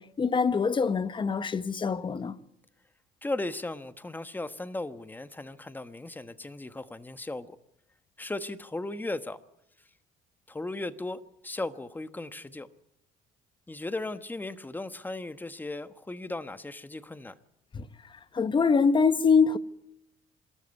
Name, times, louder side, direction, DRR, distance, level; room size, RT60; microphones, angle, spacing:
voice 1, 0.0-2.3 17.7-17.9 18.3-19.6, left 5 dB, 30° left, 1.2 m, -24 dB
voice 2, 3.2-7.6 8.2-9.4 10.5-12.7 13.7-17.3, left 2 dB, 10° left, 1.2 m, -36 dB
26.0 x 13.5 x 9.7 m
cardioid pair, 110°, 17 cm